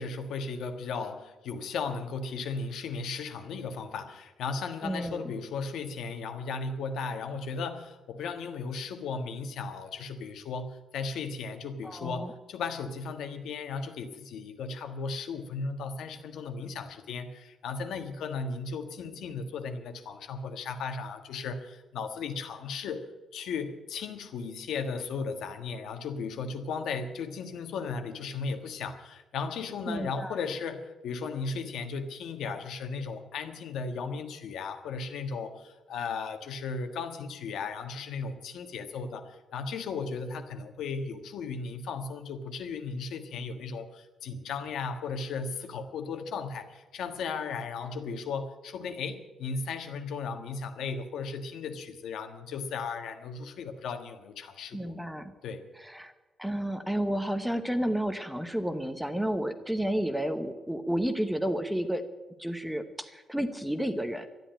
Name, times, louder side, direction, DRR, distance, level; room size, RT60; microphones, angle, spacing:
voice 1, 0.0-54.9 55.4-55.6, left 4 dB, 75° left, 7 dB, 1.5 m, -36 dB
voice 2, 4.8-5.3 11.8-12.3 29.9-30.4 54.7-55.3 55.8-56.1 56.4-62.0 62.4-64.3, equal, ahead, 9 dB, 0.8 m, -31 dB
12.5 x 10.5 x 9.0 m, 1.1 s
cardioid pair, 175°, 0 cm